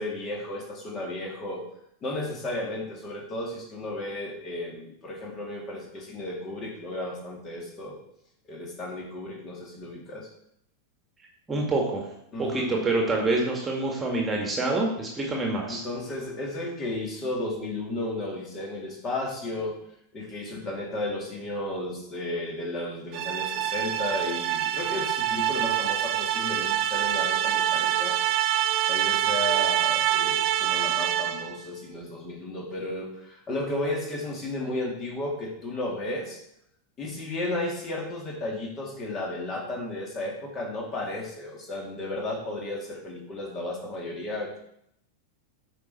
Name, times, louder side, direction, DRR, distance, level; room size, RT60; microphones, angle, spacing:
voice 1, 0.0-1.6 2.0-8.0 8.5-10.3 12.3-12.8 15.2-15.3 15.7-19.8 20.1-28.2 28.9-36.4 37.0-44.6, left 1 dB, 30° left, 0 dB, 2.3 m, -33 dB
voice 2, 11.5-12.1 12.4-15.8, right 2 dB, 15° right, 0 dB, 1.8 m, -26 dB
sound 1, 23.1-31.6, right 11 dB, 40° right, 0.5 m, -25 dB
9.3 x 5.1 x 4.2 m, 0.73 s
figure-of-eight pair, 90°, 0 cm